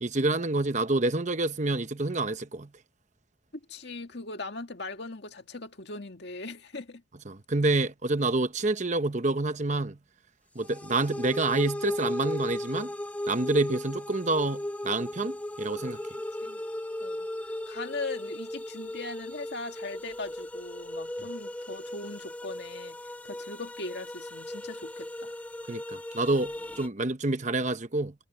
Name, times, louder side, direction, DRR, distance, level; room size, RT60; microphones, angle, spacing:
voice 1, 0.0-2.7 7.3-10.0 10.5-12.9 13.3-16.0 25.7-28.1, right 2 dB, 40° right, 1.0 m, -28 dB
voice 2, 3.5-7.0 16.4-16.6 17.0-17.3 17.7-25.3, left 3 dB, 55° left, 2.1 m, -39 dB
sound 1, 10.6-26.9, left 1 dB, 5° left, 0.5 m, -37 dB
head